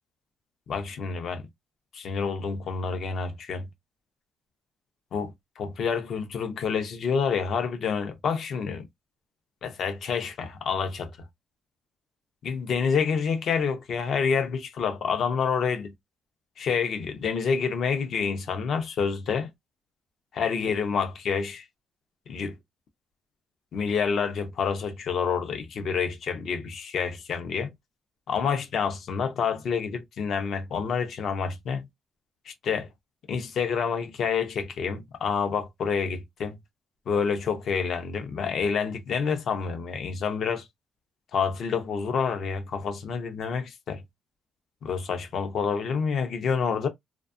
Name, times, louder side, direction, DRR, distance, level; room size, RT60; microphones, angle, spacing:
voice 1, 0.7-1.5 1.9-3.7 5.1-8.9 9.6-11.1 12.4-15.9 16.6-19.5 20.4-21.6 22.3-22.5 23.7-27.7 28.3-31.9 32.5-32.9 33.3-36.6 37.1-40.7 41.3-44.0 44.8-46.9, left 6 dB, 55° left, 0.6 m, -28 dB
2.6 x 2.2 x 2.4 m
cardioid pair, 140°, 0 cm